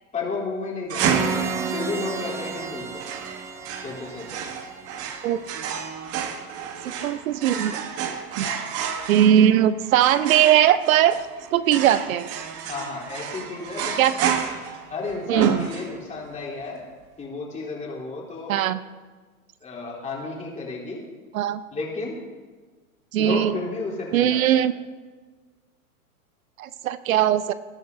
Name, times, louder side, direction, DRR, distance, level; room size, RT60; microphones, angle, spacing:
voice 1, 0.1-1.2 1.7-3.0 3.7-4.4 8.4-8.7 12.7-14.4 14.9-16.9 17.2-18.5 19.6-21.1 21.7-22.2 23.2-24.6, left 3 dB, 15° left, -3 dB, 3.4 m, -32 dB
sound 1, 0.9-16.2, right 7 dB, 30° right, 1.3 m, -31 dB
sound 2, 1.0-5.7, right 3 dB, 5° right, 0.4 m, -33 dB
voice 2, 7.0-7.8 8.4-8.5 9.1-11.2 11.5-12.3 14.0-14.3 15.3-15.6 18.5-18.8 21.3-21.6 23.1-23.5 24.1-24.7 26.6-27.5, right 11 dB, 65° right, 14 dB, 0.8 m, -19 dB
21.0 x 12.0 x 2.7 m, 1.4 s
hypercardioid pair, 125°, 44 cm